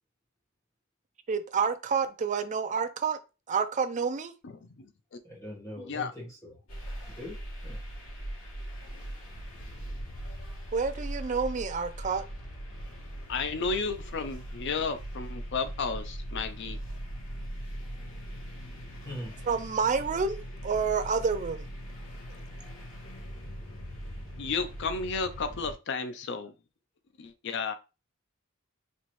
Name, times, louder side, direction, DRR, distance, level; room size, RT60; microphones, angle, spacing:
voice 1, 1.3-3.2 3.5-4.3 10.7-12.2 19.5-21.7, right 5 dB, 35° right, 0.4 m, -29 dB
voice 2, 4.4-5.2 5.8-6.1 13.3-16.8 24.4-26.5 27.2-27.7, left 4 dB, 55° left, 0.5 m, -33 dB
voice 3, 5.2-6.5 7.1-7.4 7.6-7.8 19.0-19.3, equal, 15° left, 1.2 m, -41 dB
sound 1, 6.7-25.7, equal, 75° left, 2.4 m, -40 dB
4.3 x 3.0 x 3.1 m
head